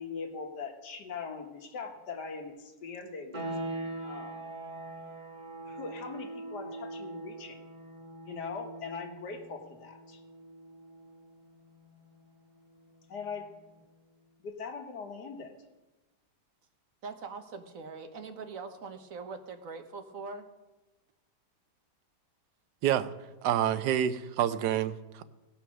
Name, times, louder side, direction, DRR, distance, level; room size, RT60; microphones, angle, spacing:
voice 1, 0.0-3.4 4.0-4.5 5.7-7.6 8.2-10.2 13.1-13.5 14.4-15.5, left 5 dB, 80° left, 1.8 m, -41 dB
sound 1, 3.3-13.8, right 2 dB, 30° right, 1.4 m, -43 dB
voice 2, 17.0-20.5, right 4 dB, 60° right, 1.3 m, -42 dB
voice 3, 22.8-23.1 23.4-25.3, right 10 dB, 85° right, 1.2 m, -28 dB
17.0 x 5.8 x 6.2 m
omnidirectional pair, 1.7 m